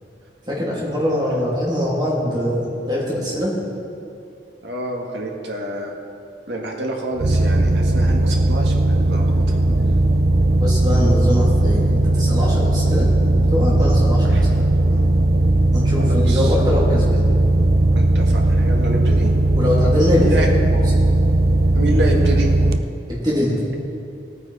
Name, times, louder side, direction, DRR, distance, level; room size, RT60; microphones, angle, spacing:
voice 1, 0.5-3.5 9.7-9.8 10.6-13.1 13.5-14.4 14.8-14.9 15.7-17.2 19.6-20.3 20.7-20.8 23.2-23.5, left 1 dB, 25° right, -6 dB, 2.8 m, -22 dB
voice 2, 4.6-5.9 6.5-9.6 14.2-14.5 16.0-16.5 18.0-19.3 20.2-20.5 21.8-22.5, right 1 dB, 80° right, 0 dB, 1.8 m, -27 dB
sound 1, 7.2-22.8, right 1 dB, 55° right, 0.5 m, -17 dB
18.0 x 9.4 x 4.3 m, 2.6 s
head